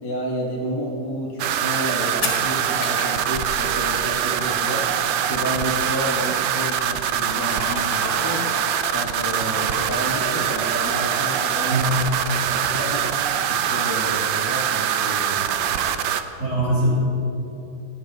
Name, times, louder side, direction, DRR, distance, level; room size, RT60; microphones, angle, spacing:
voice 1, 0.0-4.9 5.3-8.5 8.9-13.1 13.5-15.9, equal, 15° left, -4 dB, 1.1 m, -30 dB
sound 1, 1.4-16.2, right 9 dB, 75° right, 1.2 m, -23 dB
sound 2, 1.7-1.9 2.2-4.4 4.7-4.8 5.0-5.1 5.3-5.8 6.1-7.3 7.6-9.2, left 3 dB, 50° left, 2.3 m, -33 dB
Crowd, 7.0-12.5 12.9-13.0, left 4 dB, 70° left, 2.0 m, -37 dB
voice 2, 11.7-12.0 12.4-12.5 16.4-16.9, right 1 dB, 40° right, -9 dB, 3.7 m, -21 dB
16.5 x 10.0 x 4.1 m, 2.8 s
omnidirectional pair, 2.3 m